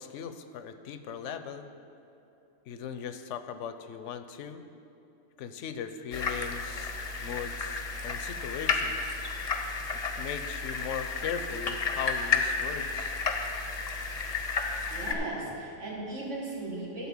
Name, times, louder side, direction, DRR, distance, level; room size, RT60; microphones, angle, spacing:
voice 1, 0.0-1.7 2.7-4.6 5.4-9.2 10.2-13.2, left 7 dB, 80° left, 10 dB, 0.9 m, -39 dB
sound 1, 6.1-15.1, left 4 dB, 40° left, 0.6 m, -32 dB
voice 2, 14.9-17.1, right 2 dB, 80° right, -3 dB, 2.0 m, -37 dB
12.0 x 4.2 x 7.2 m, 2.8 s
omnidirectional pair, 1.2 m